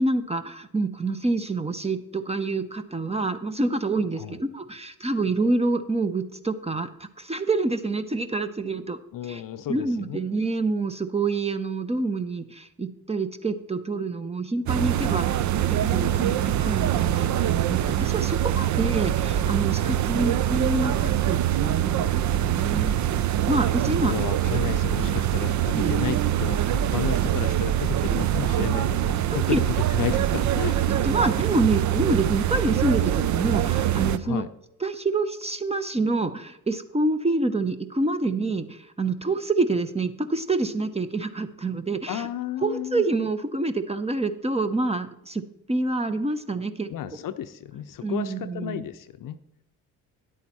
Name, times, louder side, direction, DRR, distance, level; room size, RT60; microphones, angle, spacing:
voice 1, 0.0-9.0 9.2-9.4 9.7-22.9 23.5-24.1 24.6-24.7 25.7-26.0 29.5-29.6 30.9-34.4 34.8-42.3 42.6-45.4 45.7-46.9 48.0-48.8, right 3 dB, 15° right, 10 dB, 0.8 m, -27 dB
voice 2, 9.1-10.2 24.0-29.6 29.9-30.8 34.2-34.5 42.1-43.0 46.9-49.4, left 10 dB, 50° left, 11 dB, 0.7 m, -32 dB
sound 1, 14.7-34.2, right 11 dB, 45° right, 0.6 m, -24 dB
9.9 x 8.5 x 4.2 m, 0.81 s
hypercardioid pair, 55°, 41 cm